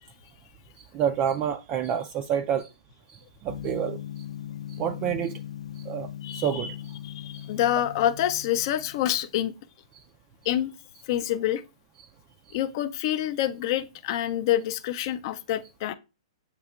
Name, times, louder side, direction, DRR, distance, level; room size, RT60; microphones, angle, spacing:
voice 1, 0.8-2.7 3.1-4.0 4.7-5.4 5.8-7.0 7.3-7.5 12.5-12.6, right 9 dB, 30° right, 0.3 m, -29 dB
Gong, 3.5-9.3, left 11 dB, 85° left, 0.6 m, -39 dB
voice 2, 6.2-6.7 7.0-9.5 10.4-10.7 11.1-11.6 12.5-15.9, left 12 dB, 45° left, 0.4 m, -27 dB
8.2 x 2.8 x 2.3 m
hypercardioid pair, 140°, 3 cm